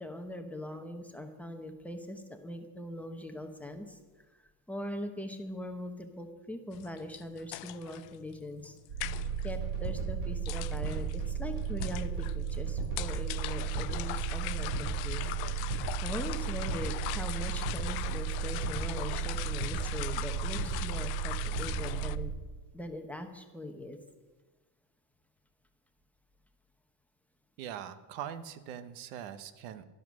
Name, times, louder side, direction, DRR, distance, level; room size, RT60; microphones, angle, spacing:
voice 1, 0.0-4.0 4.3-8.8 9.4-15.3 15.8-22.3 22.7-24.0, left 1 dB, 5° left, 4 dB, 1.0 m, -41 dB
sound 1, 6.7-22.2, left 18 dB, 55° left, 0.6 m, -41 dB
sound 2, 8.9-22.3, right 7 dB, 45° right, 6.1 m, -34 dB
voice 2, 27.6-29.8, right 9 dB, 85° right, 12 dB, 1.2 m, -42 dB
12.5 x 12.5 x 6.3 m, 1.3 s
cardioid pair, 155°, 45 cm